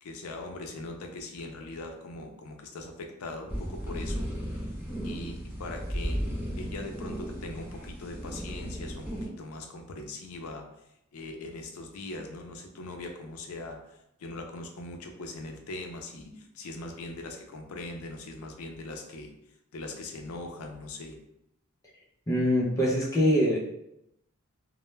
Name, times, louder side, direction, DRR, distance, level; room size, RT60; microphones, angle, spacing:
voice 1, 0.0-4.8 5.0-6.3 6.6-10.7 11.1-19.3 19.7-21.2, left 2 dB, 80° left, 3 dB, 0.4 m, -41 dB
sound 1, 3.5-9.3, equal, 10° right, 0.9 m, -35 dB
voice 2, 22.3-23.6, equal, 15° left, -4 dB, 0.4 m, -24 dB
2.2 x 2.0 x 3.1 m, 0.82 s
head